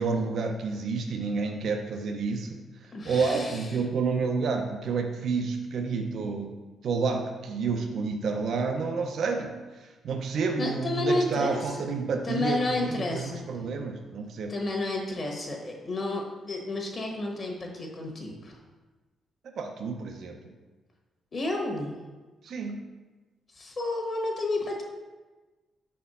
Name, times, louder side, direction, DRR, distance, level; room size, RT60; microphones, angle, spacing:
voice 1, 0.0-6.5 6.8-14.5 19.6-20.5 22.4-22.8, right 4 dB, 65° right, 4 dB, 0.5 m, -30 dB
voice 2, 2.9-3.7 10.6-11.9 12.2-13.4 14.5-18.6 21.3-21.9 23.5-24.8, left 2 dB, 40° left, 1 dB, 1.2 m, -31 dB
4.6 x 4.3 x 5.4 m, 1.2 s
cardioid pair, 110°, 0 cm